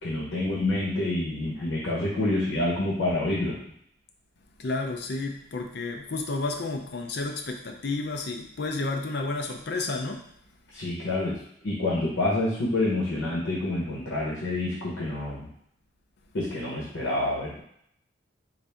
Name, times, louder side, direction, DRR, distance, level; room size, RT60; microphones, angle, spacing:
voice 1, 0.0-3.6 10.7-11.4 11.6-15.5 16.3-17.6, left 2 dB, 90° left, -4 dB, 0.9 m, -27 dB
voice 2, 4.6-10.3, left 3 dB, 55° left, 3 dB, 0.5 m, -31 dB
3.9 x 2.6 x 3.4 m, 0.70 s
head